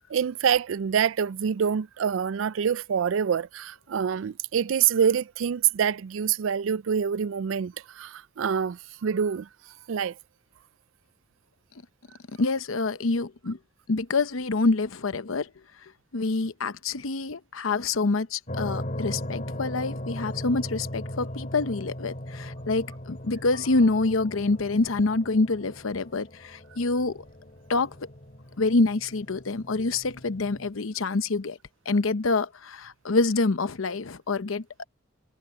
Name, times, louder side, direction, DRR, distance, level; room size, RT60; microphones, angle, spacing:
voice 1, 0.1-9.5 9.9-10.1, right 7 dB, 70° right, 0.4 m, -26 dB
voice 2, 12.4-13.6 13.9-15.5 16.1-27.2 27.7-28.0 28.6-31.6 31.9-34.6, left 3 dB, 80° left, 0.8 m, -26 dB
sound 1, 18.5-30.7, left 1 dB, 40° left, 2.4 m, -38 dB
head